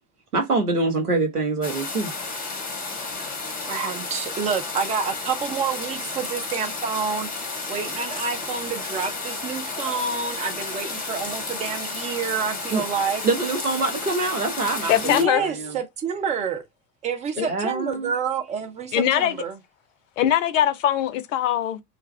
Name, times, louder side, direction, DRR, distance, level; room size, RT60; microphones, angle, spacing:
voice 1, 0.3-2.1 12.7-12.8 13.2-15.8 17.5-18.1, right 3 dB, 85° right, 0.9 m, -25 dB
sound 1, 1.6-15.2, left 3 dB, 20° left, 1.0 m, -32 dB
voice 2, 3.7-7.4 7.7-13.2 14.8-16.6 17.0-19.6, right 6 dB, 15° right, 0.4 m, -28 dB
voice 3, 14.9-15.4 17.4-17.5 18.9-19.4 20.2-21.8, left 11 dB, 60° left, 0.5 m, -21 dB
2.4 x 2.2 x 3.1 m
figure-of-eight pair, 70°, 44 cm